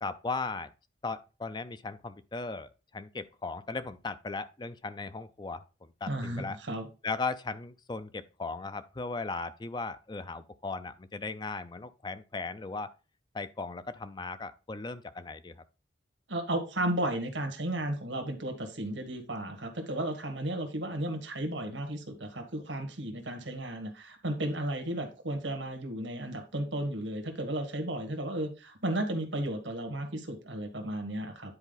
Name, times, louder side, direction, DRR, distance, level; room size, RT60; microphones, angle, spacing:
voice 1, 0.0-0.7 1.0-6.6 7.0-12.9 13.3-15.6, left 3 dB, 25° left, 0.4 m, -37 dB
voice 2, 6.1-6.9 16.3-31.6, right 1 dB, 85° right, 1.6 m, -34 dB
9.8 x 4.5 x 3.9 m
head